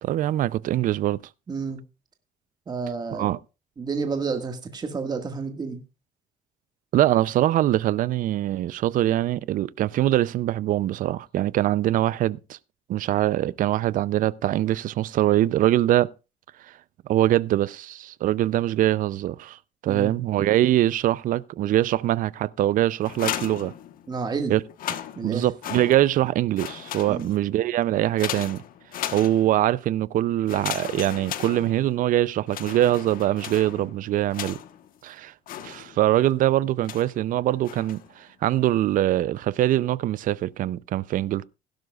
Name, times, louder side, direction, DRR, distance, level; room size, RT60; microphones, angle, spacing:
voice 1, 0.0-1.2 3.1-3.4 6.9-12.6 12.9-16.1 17.1-23.7 24.5-24.6 25.2-28.6 29.1-34.6 35.0-35.3 35.6-41.5, right 13 dB, 65° right, 0.5 m, -23 dB
voice 2, 1.5-1.8 2.7-3.3 3.8-5.8 19.9-20.1 24.1-24.6 25.2-25.5 27.1-27.3, right 4 dB, 25° right, 1.8 m, -30 dB
sound 1, 23.0-24.3 24.7-26.3 26.5-27.5 28.2-29.7 30.5-32.1 32.5-34.9 35.5-36.2 36.8-37.2 37.6-38.1, left 11 dB, 70° left, 1.2 m, -36 dB
16.5 x 12.0 x 2.4 m
cardioid pair, 145°, 15 cm